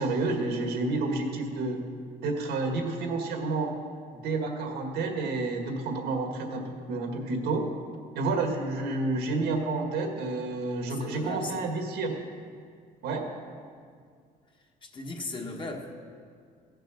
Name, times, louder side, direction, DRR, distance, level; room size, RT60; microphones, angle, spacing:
voice 1, 0.0-1.8 2.2-3.7 4.1-7.6 8.1-12.1 13.0-13.3, right 3 dB, 85° right, 3 dB, 1.9 m, -30 dB
voice 2, 10.9-11.7 14.8-15.9, left 2 dB, 30° left, 2 dB, 1.4 m, -37 dB
15.5 x 6.7 x 6.4 m, 2.1 s
cardioid pair, 110°, 17 cm